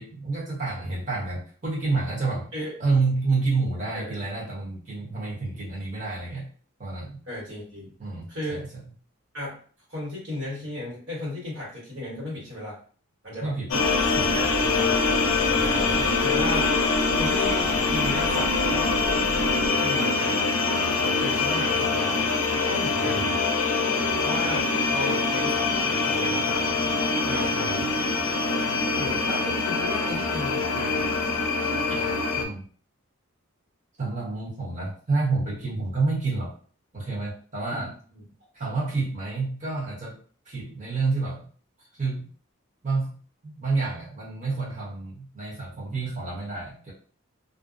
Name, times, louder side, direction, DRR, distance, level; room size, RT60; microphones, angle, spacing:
voice 1, 0.0-2.5 2.8-6.5 6.8-7.2 8.0-8.7 13.4-13.8 14.1-14.5 15.8-16.1 23.0-23.3 27.5-27.9 32.4-32.6 34.0-36.5 36.9-37.9 38.5-40.2 40.4-41.5 41.8-42.3 42.8-46.9, right 3 dB, 35° right, -6 dB, 1.0 m, -29 dB
voice 2, 7.3-7.9 8.3-8.7 9.3-9.6 9.9-12.8 13.2-13.5 14.3-15.2 15.5-15.9 16.2-16.7 17.2-18.9 19.6-20.4 20.9-22.3 22.6-23.2 24.2-26.7 27.2-27.5 28.9-31.1 31.9-32.2 37.7-38.2, left 1 dB, 55° right, -5 dB, 1.5 m, -35 dB
sound 1, 13.7-32.5, left 3 dB, 80° left, 0.4 m, -24 dB
sound 2, 13.8-19.7, equal, 75° right, 0.8 m, -37 dB
2.5 x 2.0 x 2.5 m, 0.43 s
head